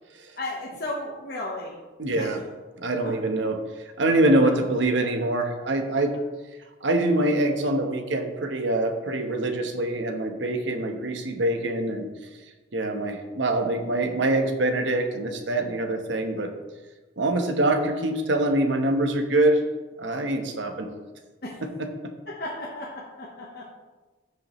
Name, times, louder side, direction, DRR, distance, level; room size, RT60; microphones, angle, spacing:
voice 1, 0.4-1.8 2.2-2.3 3.0-3.1 21.4-21.6 22.3-23.7, left 1 dB, 55° left, -3 dB, 1.2 m, -34 dB
voice 2, 2.0-2.4 2.8-3.6 4.0-6.1 6.8-12.1 12.7-16.5 17.2-19.6 20.0-20.9 21.6-21.7 22.0-22.1, right 1 dB, 75° right, 5 dB, 1.1 m, -24 dB
14.5 x 5.6 x 3.2 m, 1.2 s
head